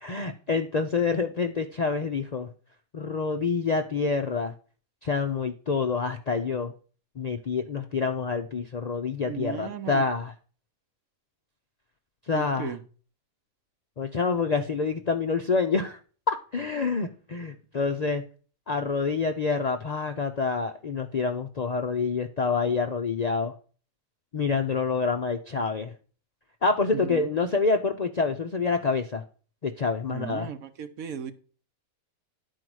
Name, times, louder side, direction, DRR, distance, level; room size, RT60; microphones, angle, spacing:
voice 1, 0.0-2.5 2.9-4.5 5.0-6.7 7.2-10.3 12.3-12.7 14.0-16.0 16.3-18.2 18.7-23.5 24.3-25.9 26.6-29.2 29.6-30.5, left 4 dB, 60° left, 6 dB, 0.4 m, -27 dB
voice 2, 9.3-10.0 12.3-12.8 26.9-27.3 30.1-31.3, right 7 dB, 80° right, 9 dB, 1.3 m, -36 dB
10.5 x 4.7 x 6.1 m, 0.41 s
omnidirectional pair, 1.5 m